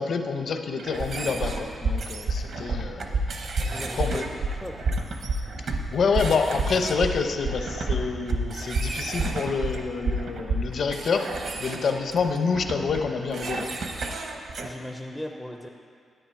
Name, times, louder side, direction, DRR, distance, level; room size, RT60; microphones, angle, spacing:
voice 1, 0.0-3.2 3.9-4.3 5.6-13.7, left 5 dB, 50° left, 6 dB, 0.7 m, -27 dB
sound 1, 0.8-14.7, right 3 dB, 55° right, 0.8 m, -36 dB
sound 2, 1.0-10.7, right 3 dB, 70° right, 1.2 m, -28 dB
voice 2, 3.6-4.9 14.6-15.7, left 1 dB, 5° left, 2 dB, 0.4 m, -38 dB
10.0 x 9.5 x 4.5 m, 2.3 s
wide cardioid pair, 165°, 0 cm